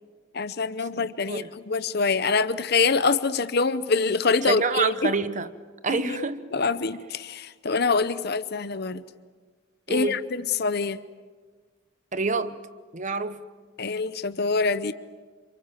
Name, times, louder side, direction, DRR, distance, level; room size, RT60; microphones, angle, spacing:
voice 1, 0.3-5.1 5.9-9.0 9.9-11.0 13.8-14.9, left 4 dB, 50° left, 0.8 m, -25 dB
voice 2, 1.0-1.5 4.4-5.5 5.8-6.5 9.9-10.2 12.1-12.6 12.9-13.4, right 4 dB, 35° right, 1.0 m, -27 dB
29.0 x 27.0 x 7.5 m
head